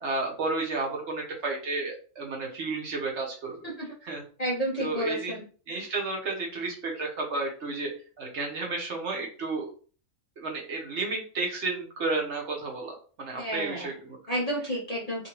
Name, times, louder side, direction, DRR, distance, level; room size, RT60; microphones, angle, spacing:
voice 1, 0.0-3.7 4.0-4.2 4.8-5.4 5.7-7.9 8.2-9.7 10.4-14.2, right 3 dB, 60° right, 0 dB, 1.0 m, -32 dB
voice 2, 4.4-5.4 5.7-5.9 13.4-13.9 14.3-15.3, right 1 dB, 40° left, -4 dB, 0.6 m, -31 dB
2.6 x 2.6 x 2.9 m, 0.40 s
omnidirectional pair, 1.5 m